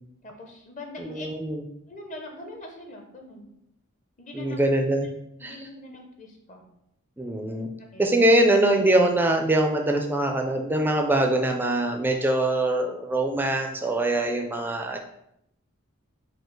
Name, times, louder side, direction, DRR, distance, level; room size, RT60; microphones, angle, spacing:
voice 1, 0.2-1.3 1.9-3.5 4.2-4.6 5.4-6.7 7.8-8.0, left 2 dB, 35° left, 2 dB, 0.6 m, -42 dB
voice 2, 1.0-1.6 4.3-5.1 5.4-5.6 7.2-7.7 8.0-15.0, right 1 dB, 10° right, 3 dB, 0.4 m, -23 dB
4.5 x 2.4 x 4.5 m, 0.78 s
head